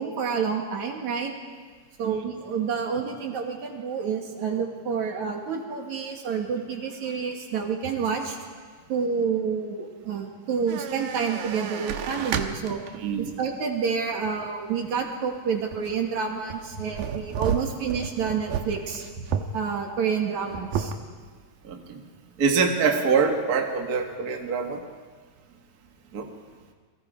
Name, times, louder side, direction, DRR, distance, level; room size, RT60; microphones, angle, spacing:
voice 1, 0.0-1.3 2.0-8.4 8.9-12.8 13.2-19.3 19.5-20.9, right 6 dB, 55° right, 2 dB, 3.4 m, -29 dB
sound 1, 10.7-13.1 13.6-13.7 15.7-16.1 16.5-19.6 19.9-20.0 20.3-21.0, right 7 dB, 90° right, 2.9 m, -32 dB
voice 2, 21.7-22.0 22.4-24.8 26.1-26.3, right 5 dB, 35° right, 2 dB, 1.5 m, -24 dB
30.0 x 23.0 x 5.0 m, 1.5 s
omnidirectional pair, 4.0 m